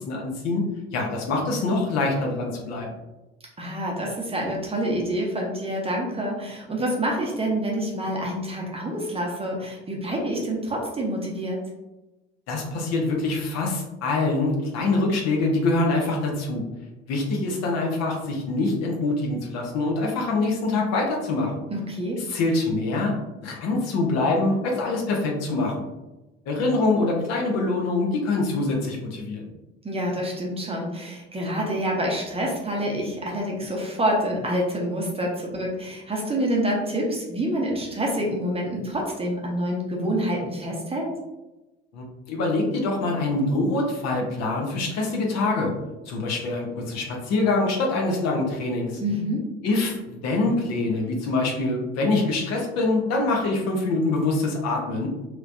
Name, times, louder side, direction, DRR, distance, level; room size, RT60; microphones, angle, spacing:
voice 1, 0.1-0.7 0.9-2.9 12.5-16.6 17.1-21.6 22.2-23.1 23.4-25.8 26.5-29.5 41.9-45.7 46.1-49.0 49.6-55.1, left 2 dB, 50° left, 0 dB, 0.9 m, -24 dB
voice 2, 3.6-11.6 21.7-22.2 29.8-41.1 49.0-49.5, equal, 20° right, -2 dB, 0.9 m, -27 dB
3.2 x 3.0 x 2.6 m, 1.0 s
figure-of-eight pair, 65°, 32 cm